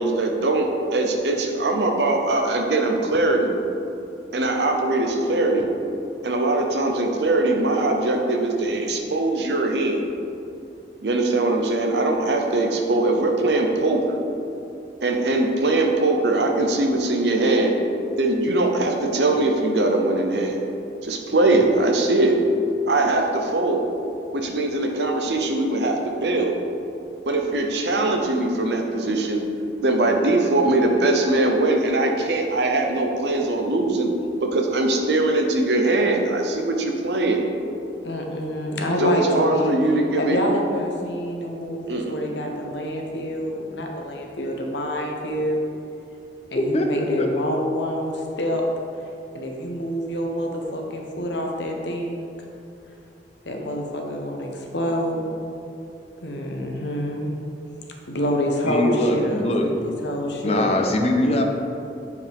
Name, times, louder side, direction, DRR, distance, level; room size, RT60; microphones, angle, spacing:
voice 1, 0.0-3.6 4.3-5.7 6.2-10.0 11.0-14.2 15.0-17.8 18.2-20.6 21.0-22.4 22.9-23.9 24.3-26.6 27.3-29.4 29.8-34.1 34.4-37.4 39.0-40.4 41.9-42.1, right 2 dB, 70° right, 3 dB, 0.7 m, -21 dB
voice 2, 38.0-39.7 40.2-45.6 46.5-48.6 49.3-52.3 53.4-55.2 56.2-57.3 58.1-59.7 60.0-60.9, equal, 85° left, 1 dB, 1.0 m, -27 dB
voice 3, 46.5-47.3 58.6-59.7 60.4-61.4, left 1 dB, 35° left, 3 dB, 0.7 m, -22 dB
8.0 x 4.9 x 3.5 m, 2.6 s
head